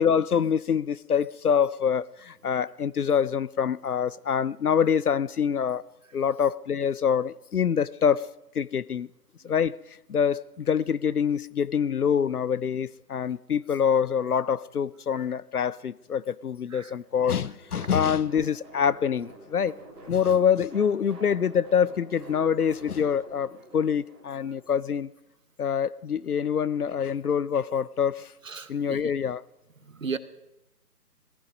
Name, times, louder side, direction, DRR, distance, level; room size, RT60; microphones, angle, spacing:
voice 1, 0.0-5.8 6.1-8.3 8.5-9.1 9.4-9.8 10.1-19.8 20.1-25.1 25.6-28.3 28.7-29.4, left 7 dB, 65° left, 0.5 m, -25 dB
sound 1, 17.1-24.6, right 1 dB, 10° right, 2.3 m, -48 dB
voice 2, 28.5-29.0 30.0-30.2, right 5 dB, 50° right, 1.0 m, -34 dB
18.5 x 14.5 x 5.2 m
figure-of-eight pair, 150°, 49 cm